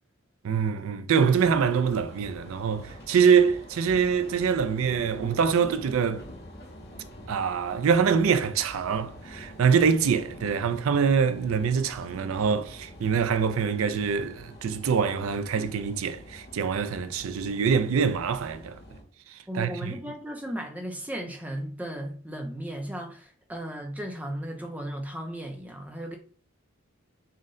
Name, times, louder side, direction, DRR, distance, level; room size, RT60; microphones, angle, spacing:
voice 1, 0.4-6.2 7.3-18.8 19.3-20.0, right 6 dB, 75° right, 0.4 m, -24 dB
sound 1, 1.3-19.0, equal, 50° left, 0.8 m, -45 dB
voice 2, 19.5-26.2, equal, 5° right, 0.4 m, -35 dB
3.8 x 2.1 x 3.6 m
head